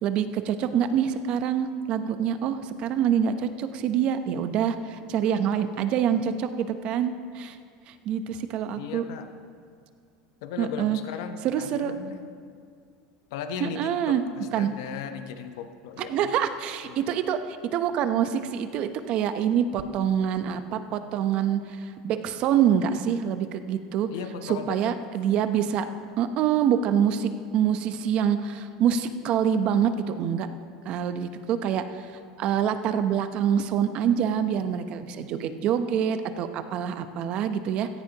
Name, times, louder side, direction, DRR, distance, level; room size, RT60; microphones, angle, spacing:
voice 1, 0.0-7.6 7.9-9.0 10.6-11.0 11.4-11.9 13.6-14.2 14.5-14.7 16.1-17.4 17.7-24.1 24.4-25.9 26.2-30.5 30.8-37.9, right 8 dB, 50° right, 10 dB, 0.8 m, -26 dB
voice 2, 8.7-9.3 10.4-12.2 13.3-16.3 16.8-17.1 24.1-25.0, left 7 dB, 75° left, 8 dB, 0.9 m, -37 dB
17.0 x 14.5 x 3.0 m, 2.2 s
supercardioid pair, 115°, 2 cm